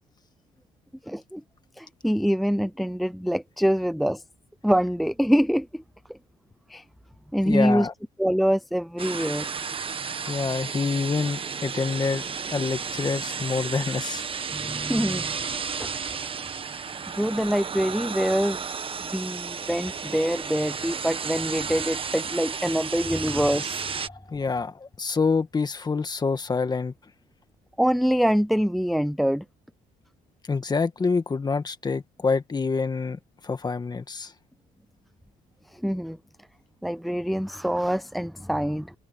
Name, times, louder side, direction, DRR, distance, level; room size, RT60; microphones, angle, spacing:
voice 1, 1.1-1.4 1.8-4.2 4.6-5.8 6.1-6.2 6.7-6.8 7.3-7.9 8.2-9.5 10.3-10.4 14.5-15.4 15.8-15.9 17.1-18.6 19.1-23.9 27.8-29.4 35.7-36.2 36.8-38.9, equal, ahead, 0.5 m, -25 dB
voice 2, 7.5-7.9 10.3-12.2 12.5-14.2 24.1-26.9 30.5-34.3, left 4 dB, 25° left, 1.9 m, -27 dB
sound 1, 9.0-24.1, right 6 dB, 30° right, 1.3 m, -33 dB
cardioid pair, 110°, 17 cm